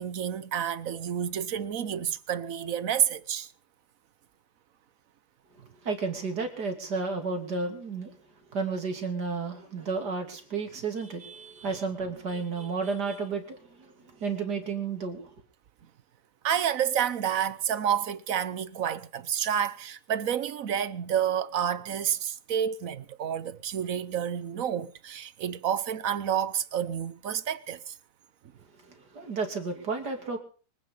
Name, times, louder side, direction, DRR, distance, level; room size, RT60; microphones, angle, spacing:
voice 1, 0.0-3.5 16.4-27.9, right 9 dB, 60° right, 1.2 m, -29 dB
voice 2, 5.8-8.1 8.5-13.9 14.2-15.3 29.1-30.4, right 4 dB, 80° right, 3.5 m, -32 dB
24.5 x 9.5 x 5.6 m
omnidirectional pair, 1.7 m